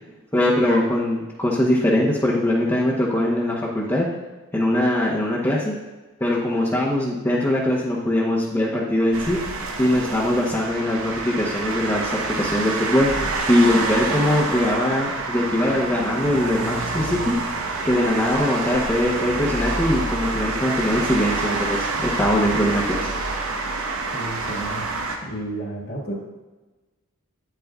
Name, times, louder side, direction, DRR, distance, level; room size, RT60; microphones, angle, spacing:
voice 1, 0.3-4.1 4.5-5.7 6.2-9.4 9.8-13.1 13.5-17.3 17.8-23.1, left 1 dB, 15° left, -6 dB, 0.9 m, -21 dB
sound 1, 9.1-25.2, right 3 dB, 75° right, 1.0 m, -27 dB
voice 2, 24.1-24.8 25.2-26.1, right 1 dB, 45° left, -2 dB, 1.7 m, -32 dB
9.2 x 9.0 x 2.4 m, 1.2 s
head